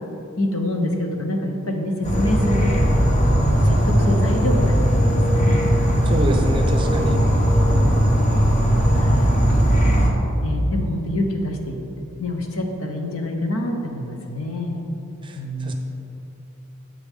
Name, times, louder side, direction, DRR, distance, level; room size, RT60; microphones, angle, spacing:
voice 1, 0.4-3.0 3.4-5.6 7.1-7.3 7.7-8.0 9.0-9.3 10.4-11.7 12.2-14.8 15.4-15.7, left 1 dB, 70° left, 3 dB, 1.1 m, -26 dB
Insect / Frog, 2.0-10.1, equal, 35° left, 1.2 m, -18 dB
voice 2, 6.1-7.2 15.2-15.7, equal, 25° right, 3 dB, 0.7 m, -26 dB
10.5 x 8.0 x 3.7 m, 3.0 s
head